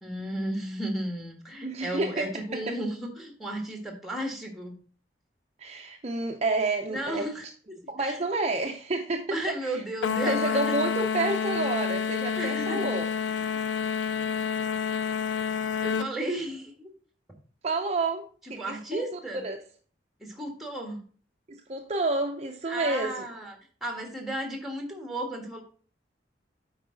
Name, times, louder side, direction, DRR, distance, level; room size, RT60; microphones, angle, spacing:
voice 1, 0.0-4.7 6.9-8.2 9.3-10.7 12.3-12.9 13.3-13.7 15.8-16.9 18.4-19.4 20.2-21.0 22.7-23.6 23.8-25.6, right 1 dB, ahead, 2 dB, 1.5 m, -34 dB
voice 2, 1.6-2.3 5.6-7.3 7.9-9.8 10.3-13.1 17.6-18.2 18.5-19.0 19.4-19.6 21.5-23.2, right 2 dB, 35° right, 4 dB, 0.5 m, -29 dB
sound 1, 10.0-16.1, left 6 dB, 85° left, 0.4 m, -29 dB
8.7 x 4.7 x 3.8 m, 0.42 s
head